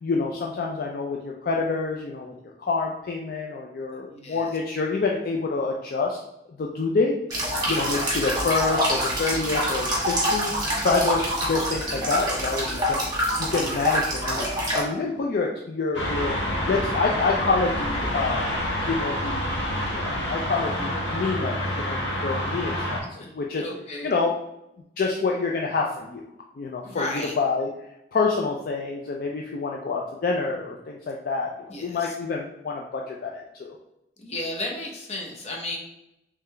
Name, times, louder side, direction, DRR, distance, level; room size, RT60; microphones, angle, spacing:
voice 1, 0.0-2.3 2.6-6.2 6.5-7.2 7.7-10.5 10.8-13.0 13.4-16.3 16.7-18.5 18.8-23.0 23.3-23.7 24.0-24.3 25.0-26.2 26.6-27.7 28.1-33.7, left 4 dB, 55° left, 0 dB, 0.4 m, -27 dB
voice 2, 4.1-4.5 7.6-7.9 23.2-23.3 23.6-24.1 26.8-27.4 31.7-32.1 34.2-35.8, left 2 dB, 40° left, 0 dB, 0.8 m, -34 dB
sound 1, 7.3-14.8, equal, 25° right, 1.3 m, -26 dB
sound 2, 15.9-23.0, equal, 90° left, 0.9 m, -28 dB
3.7 x 3.2 x 3.3 m, 0.84 s
head